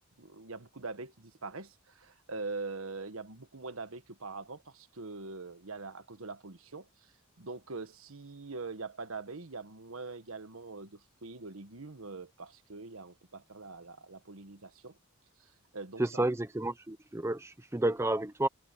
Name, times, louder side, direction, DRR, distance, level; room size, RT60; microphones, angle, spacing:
voice 1, 0.0-7.1 7.4-15.0 15.4-16.2, right 3 dB, 75° right, 1.4 m, -43 dB
voice 2, 16.0-18.5, right 2 dB, 15° right, 0.7 m, -31 dB
head